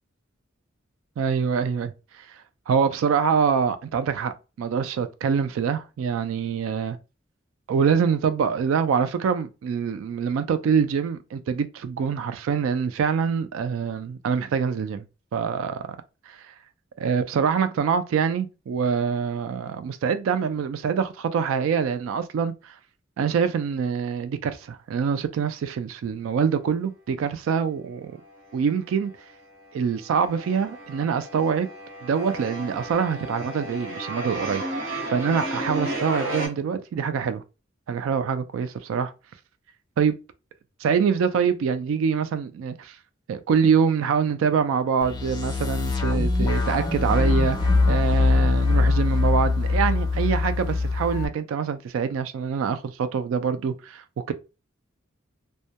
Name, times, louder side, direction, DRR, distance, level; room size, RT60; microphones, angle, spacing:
voice 1, 1.2-7.0 7.7-15.0 15.3-16.0 16.3-16.5 17.0-22.8 23.2-28.1 28.5-29.1 29.7-31.7 32.0-34.6 35.1-37.4 37.9-39.1 40.0-40.1 40.8-43.0 43.3-54.3, right 6 dB, 85° right, 0.3 m, -25 dB
sound 1, 28.2-29.0 29.3-36.5, right 1 dB, 65° right, 1.3 m, -33 dB
sound 2, 45.0-51.2, left 3 dB, 20° left, 0.5 m, -22 dB
2.2 x 2.1 x 2.7 m
head